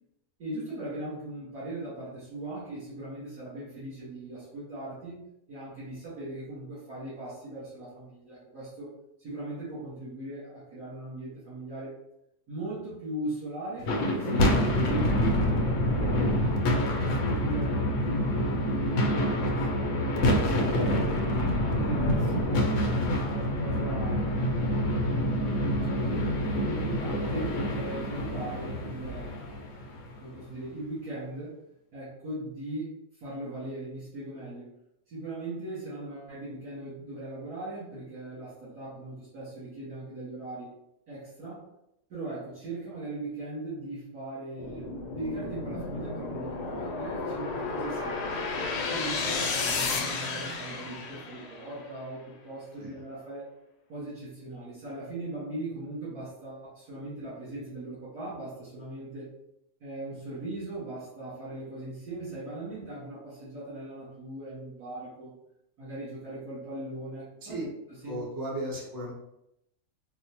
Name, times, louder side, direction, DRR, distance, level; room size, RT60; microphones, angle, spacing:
voice 1, 0.4-8.9 9.2-11.9 12.5-18.3 19.0-19.9 20.7-21.0 21.7-24.4 25.7-26.3 26.6-31.6 31.9-34.7 35.1-40.7 41.1-41.7 42.1-48.5 48.8-53.5 53.9-59.3 59.8-65.3 65.8-67.6 68.0-68.2, right 2 dB, 75° right, -12 dB, 2.2 m, -39 dB
sound 1, 13.8-30.2, equal, 65° left, 0.8 m, -27 dB
sound 2, 44.6-51.9, left 4 dB, 85° left, 1.2 m, -33 dB
voice 2, 68.0-69.1, right 1 dB, 20° right, -4 dB, 0.6 m, -35 dB
4.2 x 2.1 x 2.8 m, 0.82 s
omnidirectional pair, 1.7 m